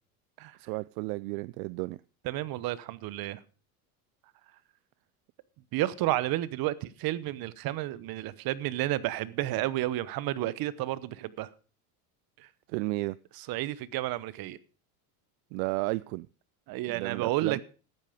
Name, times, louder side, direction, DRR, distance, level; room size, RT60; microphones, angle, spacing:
voice 1, 0.6-2.0 12.7-13.2 15.5-16.3 16.9-17.6, right 24 dB, 70° right, 0.5 m, -33 dB
voice 2, 2.2-3.4 5.7-11.5 12.4-12.5 13.3-14.6 16.7-17.6, right 15 dB, 55° right, 1.1 m, -31 dB
13.5 x 9.2 x 5.1 m
supercardioid pair, 105°, 44 cm